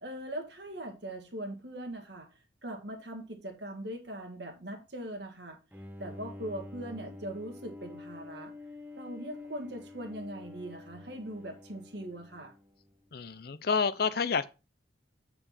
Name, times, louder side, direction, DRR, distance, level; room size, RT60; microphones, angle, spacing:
voice 1, 0.0-2.3 2.6-5.6 6.0-8.5 9.0-12.5, right 1 dB, 60° right, 1.7 m, -41 dB
Bowed string instrument, 5.7-13.0, left 2 dB, 10° right, 0.6 m, -47 dB
voice 2, 13.1-14.5, left 5 dB, 55° left, 0.5 m, -29 dB
7.7 x 4.6 x 4.1 m
head